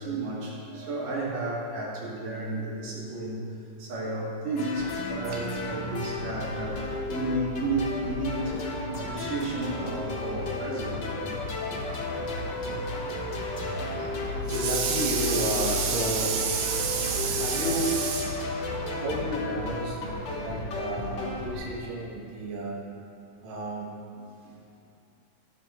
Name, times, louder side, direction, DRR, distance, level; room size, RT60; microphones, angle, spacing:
voice 1, 0.0-3.4 3.8-6.8 7.1-11.0 24.2-24.6, right 2 dB, 80° right, -6 dB, 3.7 m, -32 dB
sound 1, 4.6-21.5, left 2 dB, 55° left, 1.2 m, -33 dB
sound 2, 9.4-19.8, left 3 dB, 85° left, 3.4 m, -44 dB
voice 2, 11.5-11.9 14.0-14.1 14.5-18.4 18.9-22.8 23.4-24.0, right 3 dB, 50° right, -3 dB, 1.8 m, -30 dB
15.0 x 11.0 x 3.1 m, 2.6 s
omnidirectional pair, 3.7 m